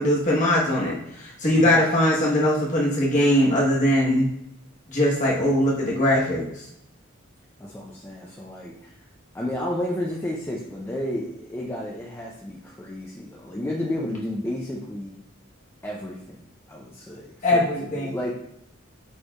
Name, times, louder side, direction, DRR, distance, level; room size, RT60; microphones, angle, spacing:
voice 1, 0.0-4.3 4.9-6.6 17.4-18.1, left 1 dB, 35° left, -4 dB, 1.1 m, -21 dB
voice 2, 7.6-8.9 9.3-15.2 15.8-16.4 16.7-18.3, left 1 dB, 10° left, -3 dB, 0.4 m, -32 dB
6.3 x 3.2 x 2.3 m, 0.76 s
head